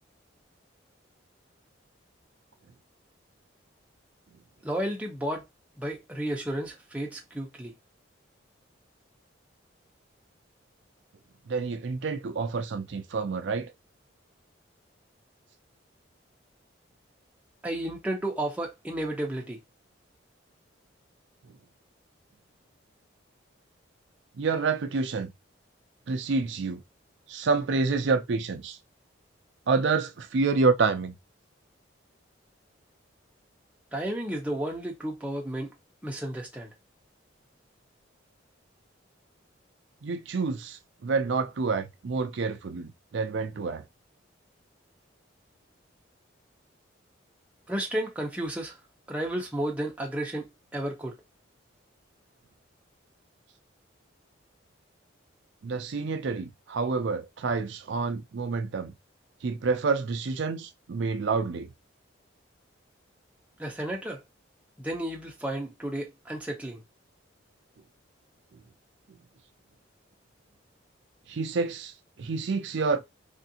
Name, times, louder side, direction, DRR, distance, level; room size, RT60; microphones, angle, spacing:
voice 1, 4.6-5.4 5.8-7.7 17.6-19.6 33.9-35.7 36.0-36.7 47.7-48.8 49.1-51.1 63.6-64.2 64.8-66.8, right 1 dB, 5° right, 0.7 m, -32 dB
voice 2, 11.5-13.7 24.4-25.3 26.1-26.8 27.3-28.8 29.7-31.1 40.0-43.8 55.6-58.9 59.4-61.7 69.1-69.2 71.3-73.0, right 4 dB, 65° right, 0.4 m, -28 dB
3.5 x 2.5 x 2.7 m
head